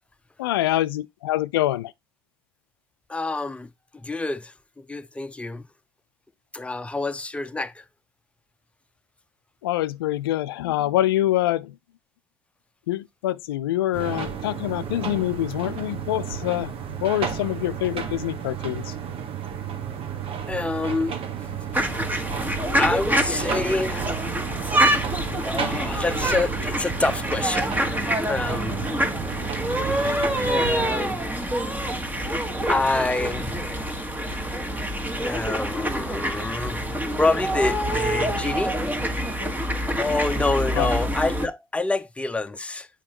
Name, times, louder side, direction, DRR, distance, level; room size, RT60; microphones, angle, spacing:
voice 1, 0.4-1.9 9.6-11.7 12.9-16.7 17.0-18.9 40.7-40.9, left 14 dB, 80° left, 0.4 m, -25 dB
voice 2, 3.1-3.7 4.0-5.7 6.5-7.8 20.5-21.2 22.8-24.1 25.3-28.8 30.4-31.2 32.7-34.0 35.2-38.8 40.0-42.9, left 2 dB, 10° left, 0.7 m, -27 dB
sound 1, 13.9-31.0, right 7 dB, 50° right, 1.5 m, -32 dB
sound 2, 21.7-41.5, equal, 15° right, 1.6 m, -26 dB
8.7 x 5.1 x 2.9 m
hypercardioid pair, 65°, 12 cm